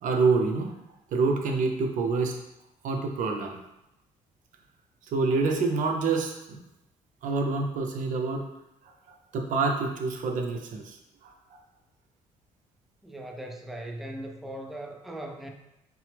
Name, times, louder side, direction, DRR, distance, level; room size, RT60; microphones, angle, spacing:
voice 1, 0.0-0.8 1.1-2.4 2.8-3.6 5.1-6.6 7.2-8.5 8.8-8.9 9.3-11.3, right 4 dB, 65° right, 3 dB, 0.7 m, -27 dB
voice 2, 13.0-15.5, right 1 dB, ahead, 1 dB, 0.5 m, -39 dB
5.8 x 2.0 x 3.4 m, 0.88 s
cardioid pair, 100°, 14 cm